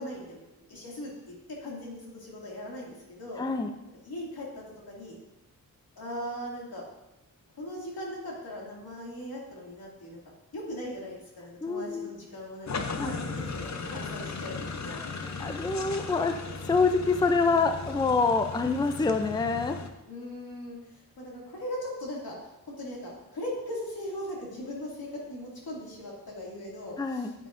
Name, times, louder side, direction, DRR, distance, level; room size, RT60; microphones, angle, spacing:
voice 1, 0.0-3.5 4.0-5.2 6.0-6.9 7.6-10.2 10.5-15.1 20.1-27.3, left 1 dB, 90° left, -4 dB, 2.4 m, -39 dB
voice 2, 3.4-3.7 11.6-12.1 13.0-13.2 14.9-15.0 15.4-16.4 16.6-19.8 27.0-27.3, left 4 dB, 10° left, 6 dB, 0.5 m, -26 dB
sound 1, 12.7-19.9, left 4 dB, 50° left, 0.7 m, -37 dB
9.4 x 8.9 x 2.6 m, 0.95 s
wide cardioid pair, 125°, 35 cm